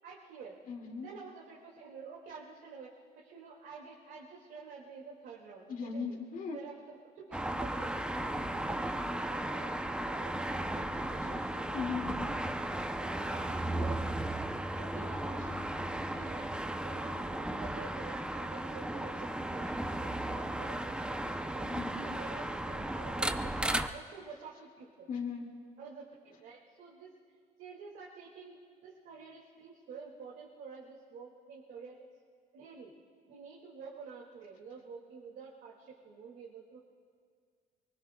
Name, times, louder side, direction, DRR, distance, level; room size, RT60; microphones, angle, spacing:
voice 1, 0.0-0.6 1.0-2.9 3.2-6.2 6.5-11.7 12.8-14.3 14.7-15.8 16.1-16.5 16.8-21.7 22.0-25.1 25.8-27.1 27.6-32.1 32.5-32.9 33.3-36.8, right 5 dB, 70° right, -3 dB, 2.3 m, -49 dB
voice 2, 0.7-1.1 5.7-6.6 11.7-12.2 21.6-22.1 25.1-25.5, left 5 dB, 55° left, 1 dB, 2.3 m, -37 dB
sound 1, 7.3-23.9, right 1 dB, 5° right, 0.7 m, -35 dB
25.0 x 23.0 x 2.4 m, 2.1 s
cardioid pair, 110°, 17 cm